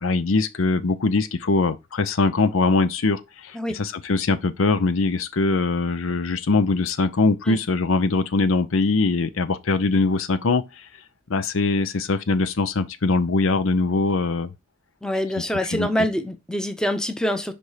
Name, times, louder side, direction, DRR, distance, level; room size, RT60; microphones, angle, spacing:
voice 1, 0.0-10.9 11.3-14.5 15.7-15.9, left 3 dB, 85° left, 0.7 m, -22 dB
voice 2, 15.0-17.5, equal, 5° left, 0.7 m, -25 dB
5.3 x 4.3 x 4.8 m
head